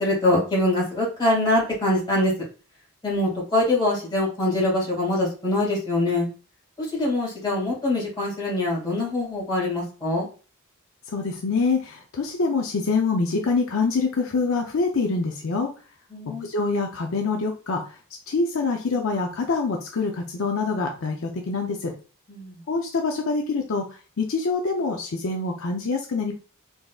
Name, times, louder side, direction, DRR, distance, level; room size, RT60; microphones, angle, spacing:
voice 1, 0.0-2.3 3.0-6.3 6.9-10.3 16.1-16.5 22.3-22.6, left 1 dB, 20° left, -5 dB, 2.1 m, -23 dB
voice 2, 11.1-15.7 16.4-17.8 18.3-21.9 22.7-23.8 24.2-26.3, left 4 dB, 65° left, 2 dB, 0.6 m, -25 dB
3.9 x 3.5 x 2.4 m, 0.35 s
head